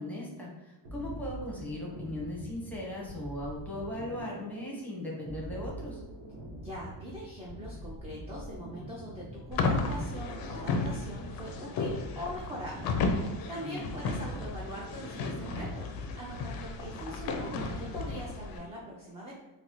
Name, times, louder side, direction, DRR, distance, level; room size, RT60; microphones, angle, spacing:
voice 1, 0.0-6.0 13.6-13.9, left 1 dB, 5° left, -5 dB, 0.8 m, -38 dB
sound 1, 0.8-18.5, right 1 dB, 70° right, 1.0 m, -44 dB
voice 2, 6.6-13.2 13.5-19.3, equal, 15° right, -5 dB, 0.4 m, -42 dB
sound 2, 9.5-18.6, left 3 dB, 50° left, 0.5 m, -34 dB
3.9 x 2.0 x 2.9 m, 1.0 s
cardioid pair, 125°, 47 cm